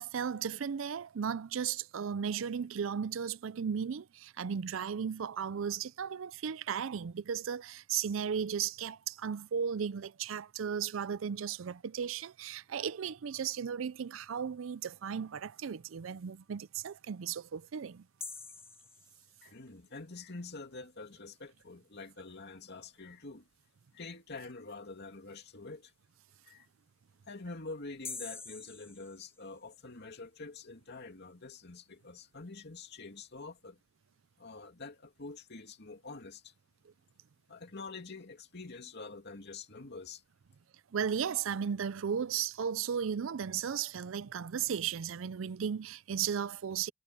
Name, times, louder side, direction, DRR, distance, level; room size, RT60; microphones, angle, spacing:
voice 1, 0.0-18.0 40.9-46.9, right 7 dB, 75° right, 0.5 m, -35 dB
sound 1, 18.2-19.7 28.0-29.8, left 4 dB, 10° left, 0.7 m, -46 dB
voice 2, 19.4-23.5 23.9-25.9 26.4-26.7 27.3-33.8 34.4-36.5 37.5-40.2, left 3 dB, 55° left, 2.5 m, -46 dB
head